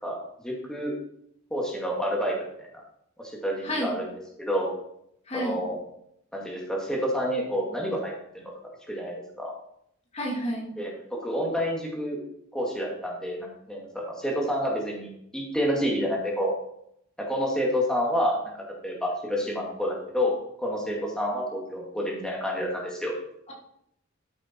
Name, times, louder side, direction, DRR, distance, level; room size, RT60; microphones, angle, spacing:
voice 1, 0.4-0.9 1.5-2.7 3.2-4.1 4.4-4.7 5.3-5.8 6.3-8.1 8.9-9.5 10.8-12.2 12.5-16.5 17.3-18.3 18.8-20.3 20.6-23.1, equal, 5° left, -2 dB, 2.3 m, -28 dB
voice 2, 5.3-5.6 10.1-10.7, equal, 30° left, -1 dB, 2.3 m, -30 dB
13.0 x 7.1 x 4.6 m, 0.73 s
head